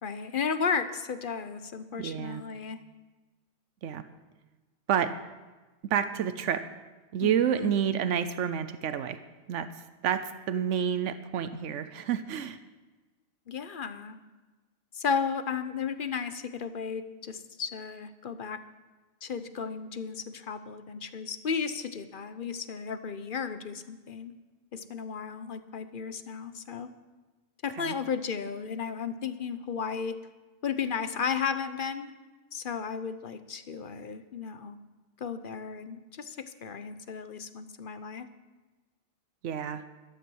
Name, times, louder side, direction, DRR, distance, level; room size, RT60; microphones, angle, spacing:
voice 1, 0.0-2.8 7.2-7.7 13.5-14.2 14.9-18.6 19.2-24.3 24.7-26.9 27.6-30.2 30.6-32.1 32.5-34.8 35.2-38.3, left 6 dB, 50° left, 11 dB, 0.9 m, -34 dB
voice 2, 2.0-2.4 3.8-4.0 4.9-5.1 5.8-6.7 7.1-9.2 9.5-9.7 10.0-12.6 27.8-27.9 39.4-39.8, right 8 dB, 90° right, 11 dB, 1.0 m, -29 dB
12.5 x 12.5 x 6.2 m, 1.2 s
omnidirectional pair, 1.2 m